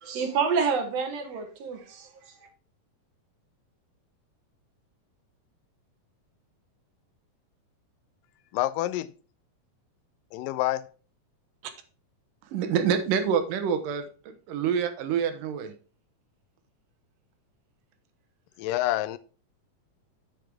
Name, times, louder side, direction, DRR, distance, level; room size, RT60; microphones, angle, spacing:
voice 1, 0.0-2.1, right 5 dB, 60° right, 2.0 m, -28 dB
voice 2, 8.5-9.1 10.3-10.9 18.6-19.2, left 15 dB, 90° left, 2.2 m, -27 dB
voice 3, 12.5-15.7, right 7 dB, 85° right, 2.7 m, -27 dB
8.0 x 7.6 x 3.5 m
omnidirectional pair, 3.8 m